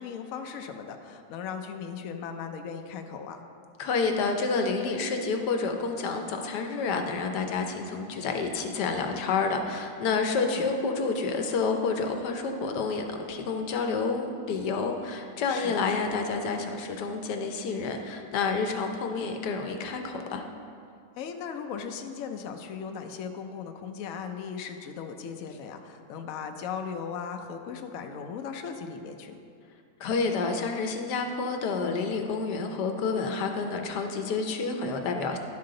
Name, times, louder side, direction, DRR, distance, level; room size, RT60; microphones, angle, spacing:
voice 1, 0.0-3.4 10.4-10.7 15.5-15.8 21.2-29.4, left 6 dB, 85° left, 5 dB, 0.7 m, -37 dB
voice 2, 3.8-20.4 30.0-35.4, left 4 dB, 65° left, 4 dB, 1.2 m, -29 dB
11.0 x 5.7 x 3.8 m, 2.4 s
omnidirectional pair, 2.1 m